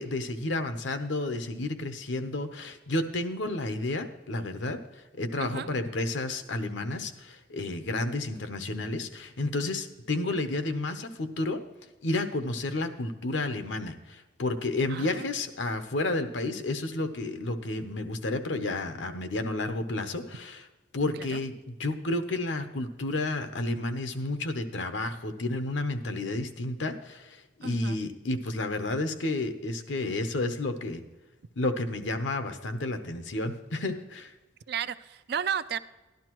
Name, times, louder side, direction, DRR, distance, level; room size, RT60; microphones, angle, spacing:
voice 1, 0.0-11.6 12.0-20.7 20.9-31.0 31.6-34.3, left 2 dB, 80° left, 8 dB, 0.9 m, -31 dB
voice 2, 5.4-5.7 14.9-15.3 21.1-21.4 27.6-28.0 34.7-35.8, right 8 dB, 60° right, 13 dB, 0.4 m, -33 dB
12.0 x 11.5 x 3.0 m, 1.2 s
head